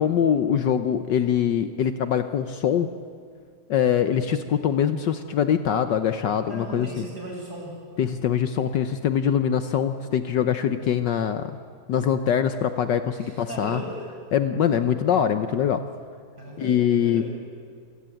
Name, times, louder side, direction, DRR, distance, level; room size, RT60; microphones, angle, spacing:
voice 1, 0.0-2.9 3.7-7.0 8.0-11.5 11.9-13.8 14.3-15.8 16.6-17.2, left 8 dB, 65° left, 10 dB, 1.3 m, -23 dB
voice 2, 6.5-7.7 13.1-14.0 16.4-17.3, right 1 dB, 50° right, -1 dB, 6.5 m, -37 dB
28.0 x 15.5 x 9.1 m, 2.1 s
omnidirectional pair, 2.3 m